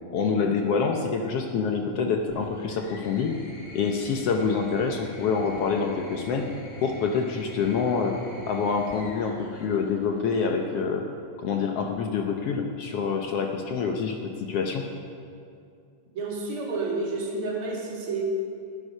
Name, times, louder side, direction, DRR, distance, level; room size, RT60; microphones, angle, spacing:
voice 1, 0.1-3.4 3.7-6.5 6.8-11.1 11.4-14.8, left 5 dB, 70° left, 3 dB, 1.5 m, -26 dB
sound 1, 2.3-10.7 11.9-12.5, left 1 dB, 25° left, 1.0 m, -45 dB
voice 2, 16.1-18.2, right 3 dB, 45° right, -3 dB, 3.0 m, -30 dB
18.5 x 9.8 x 5.4 m, 2.4 s
omnidirectional pair, 3.5 m